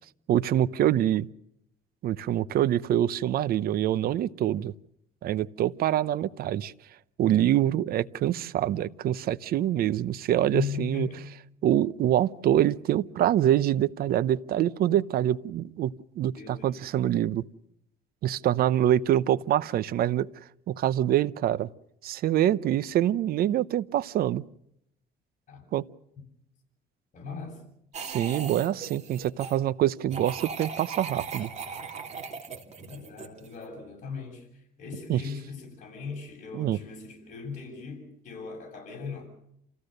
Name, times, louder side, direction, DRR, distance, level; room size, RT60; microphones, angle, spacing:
voice 1, 0.3-1.3 2.0-4.7 5.2-6.7 7.2-11.1 11.6-17.4 18.2-20.3 20.7-21.7 22.0-24.4 25.7-25.8 28.0-31.5 35.1-35.2 36.5-36.8, right 12 dB, 65° right, 17 dB, 0.8 m, -25 dB
voice 2, 10.5-11.2 16.4-16.9 25.5-25.7 27.1-27.7 32.9-39.3, left 5 dB, 50° left, 0 dB, 7.4 m, -38 dB
sound 1, 27.9-29.6 30.1-33.6, right 5 dB, 40° right, 3.1 m, -38 dB
28.0 x 15.5 x 6.6 m, 0.76 s
cardioid pair, 110°, 17 cm